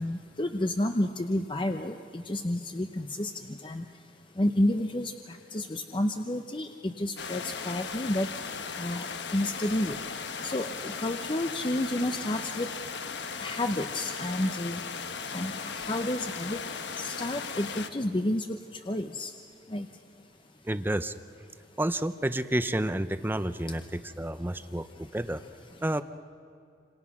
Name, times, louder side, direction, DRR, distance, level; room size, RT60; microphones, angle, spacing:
voice 1, 0.0-3.8 4.4-8.3 8.8-10.0 10.4-12.7 13.4-14.8 15.3-16.6 17.0-18.6 18.9-19.3 19.7-19.9, left 1 dB, 30° left, 6 dB, 0.7 m, -30 dB
sound 1, 7.2-17.9, left 5 dB, 85° left, 1.2 m, -37 dB
voice 2, 20.7-21.1 21.8-25.4 25.8-26.0, right 1 dB, 10° right, 12 dB, 0.6 m, -30 dB
28.0 x 26.5 x 6.0 m, 2.6 s
head